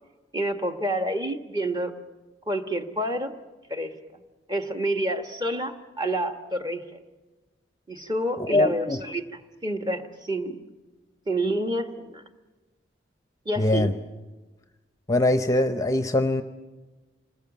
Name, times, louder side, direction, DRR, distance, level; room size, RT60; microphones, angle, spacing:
voice 1, 0.3-1.9 2.5-3.3 3.7-3.9 4.5-7.0 7.9-10.6 11.3-12.2 13.4-14.0, right 1 dB, 25° right, 6 dB, 1.4 m, -28 dB
voice 2, 8.5-9.0 13.6-13.9 15.1-16.4, left 2 dB, 15° left, 9 dB, 0.7 m, -22 dB
27.5 x 20.5 x 7.3 m, 1.2 s
head